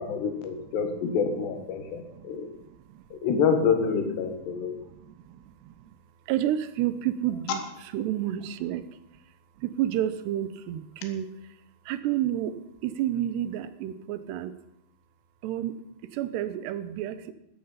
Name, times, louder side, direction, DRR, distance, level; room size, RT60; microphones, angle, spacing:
voice 1, 0.0-2.5 3.1-4.8, left 6 dB, 85° left, 6 dB, 3.8 m, -27 dB
voice 2, 1.8-3.1 4.5-6.0 6.3-8.8 9.6-11.3 11.9-14.5 15.4-15.8 16.1-17.3, right 12 dB, 85° right, 13 dB, 3.1 m, -31 dB
14.0 x 14.0 x 5.7 m, 0.82 s
omnidirectional pair, 4.7 m